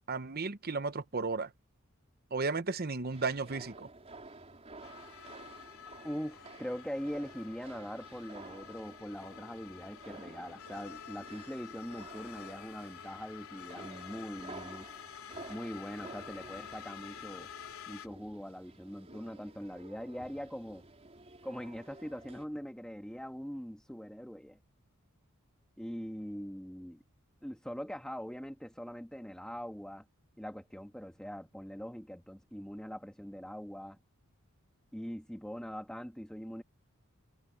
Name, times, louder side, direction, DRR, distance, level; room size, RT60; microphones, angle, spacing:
voice 1, 0.1-1.5 2.3-3.9, right 4 dB, 45° right, 1.0 m, -34 dB
sound 1, 3.1-22.4, right 2 dB, 30° right, 3.9 m, -52 dB
sound 2, 4.8-18.1, left 8 dB, 85° left, 3.5 m, -49 dB
voice 2, 6.0-14.9 15.5-17.5 17.9-20.8 21.4-24.6 25.8-27.0 27.4-30.0 30.4-34.0 34.9-36.6, equal, 5° left, 1.4 m, -42 dB
head